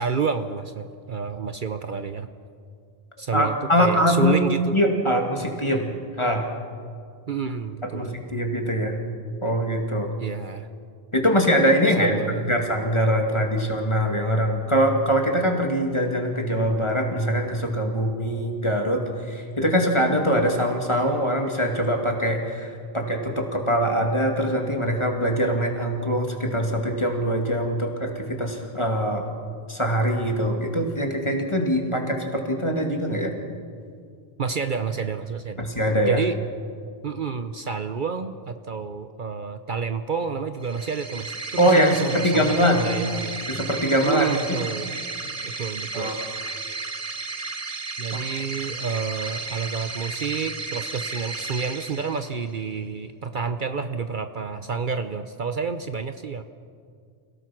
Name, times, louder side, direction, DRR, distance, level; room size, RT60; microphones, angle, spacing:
voice 1, 0.0-2.3 3.2-4.7 5.6-6.0 7.3-8.1 10.2-10.7 12.0-12.6 34.4-35.7 36.1-36.3 37.0-43.4 44.0-44.9 45.4-46.1 48.0-56.4, right 5 dB, 55° right, 9 dB, 0.9 m, -29 dB
voice 2, 3.3-4.4 4.7-5.8 6.2-6.5 7.8-9.0 9.4-10.1 11.1-12.2 12.4-29.3 29.7-33.3 35.6-36.2 41.6-42.9 43.5-44.6 45.9-46.1 48.1-48.2, equal, 30° left, 2 dB, 2.5 m, -23 dB
sound 1, 40.6-52.6, right 3 dB, 35° right, 1.2 m, -34 dB
28.5 x 17.0 x 6.0 m, 2.2 s
omnidirectional pair, 1.1 m